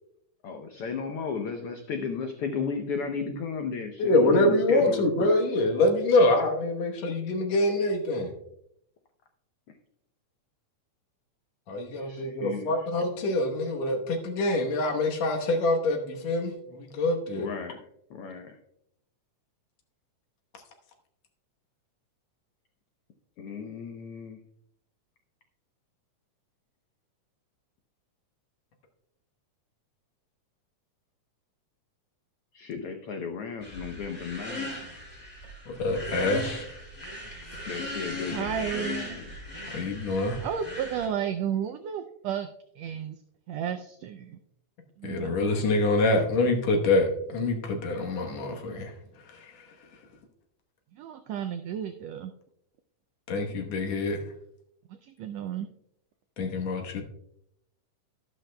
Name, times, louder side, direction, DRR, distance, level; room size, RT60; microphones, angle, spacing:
voice 1, 0.4-5.4 11.9-12.7 17.4-18.6 23.4-24.4 32.5-34.7 37.7-39.3, left 5 dB, 85° left, 5 dB, 1.2 m, -34 dB
voice 2, 4.0-8.3 11.7-17.5 35.7-36.7 39.7-40.4 45.0-48.9 49.3-49.7 53.3-54.2 56.4-57.0, left 2 dB, 65° left, 3 dB, 2.2 m, -25 dB
sound 1, 33.6-41.1, left 1 dB, 15° left, 2.6 m, -38 dB
voice 3, 38.3-39.2 40.4-42.5 42.8-43.2 43.5-44.4 45.0-45.4 50.9-52.3 55.0-55.7, right 8 dB, 90° right, 7 dB, 1.4 m, -32 dB
12.0 x 12.0 x 2.2 m, 0.76 s
omnidirectional pair, 3.6 m